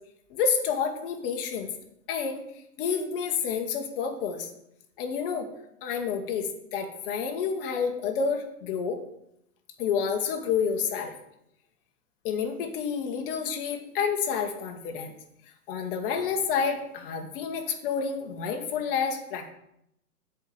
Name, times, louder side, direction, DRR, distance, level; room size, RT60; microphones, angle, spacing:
voice 1, 0.3-1.7 2.1-2.4 2.8-4.5 5.0-5.5 5.8-9.0 9.8-11.1 12.2-15.1 15.7-19.5, left 6 dB, 35° left, 4 dB, 1.3 m, -29 dB
7.8 x 4.9 x 7.1 m, 0.78 s
hypercardioid pair, 135°, 46 cm